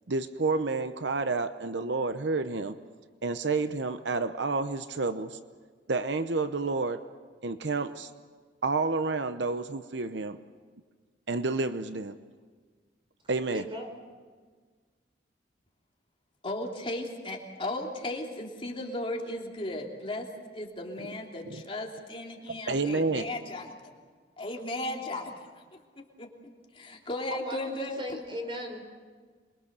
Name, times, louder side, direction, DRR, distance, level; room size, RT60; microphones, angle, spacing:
voice 1, 0.1-2.8 3.2-5.4 5.9-7.0 7.4-8.1 8.6-10.4 11.3-12.1 13.3-13.6 21.5-21.6 22.7-23.3, right 3 dB, 70° right, 11 dB, 0.8 m, -29 dB
voice 2, 13.5-13.9 27.3-28.8, equal, 30° right, 4 dB, 4.7 m, -37 dB
voice 3, 16.4-20.3 20.5-23.9 24.4-25.3 26.0-28.0, left 1 dB, 30° left, 0 dB, 3.0 m, -36 dB
27.5 x 23.0 x 6.8 m, 1.5 s
head